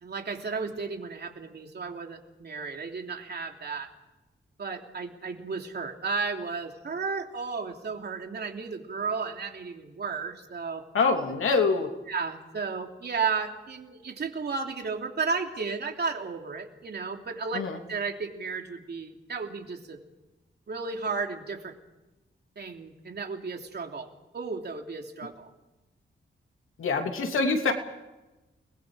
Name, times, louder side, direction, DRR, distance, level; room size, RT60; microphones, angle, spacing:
voice 1, 0.0-3.9 4.6-10.8 12.1-17.6 17.9-20.0 20.7-21.7 22.6-24.1 24.3-25.5, right 5 dB, 55° right, 3 dB, 3.1 m, -33 dB
voice 2, 10.9-11.9 17.5-17.8 26.8-27.7, left 4 dB, 90° left, 4 dB, 2.9 m, -25 dB
29.5 x 21.0 x 5.1 m, 1.1 s
wide cardioid pair, 130°, 21 cm